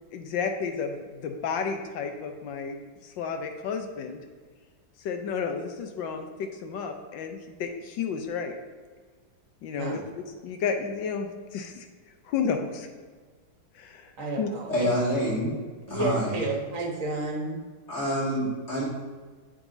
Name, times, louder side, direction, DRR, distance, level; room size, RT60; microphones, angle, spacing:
voice 1, 0.1-2.8 3.0-4.2 5.0-8.6 9.6-10.0 10.4-11.9 12.2-12.9 13.7-14.1 14.4-14.5, left 6 dB, 85° left, 5 dB, 1.5 m, -32 dB
voice 2, 14.2-14.9 15.9-17.6, right 2 dB, 50° right, 0 dB, 1.5 m, -31 dB
voice 3, 14.7-15.6 15.9-16.4 17.9-18.8, equal, 35° left, -6 dB, 2.3 m, -27 dB
7.9 x 7.5 x 2.7 m, 1.5 s
omnidirectional pair, 2.0 m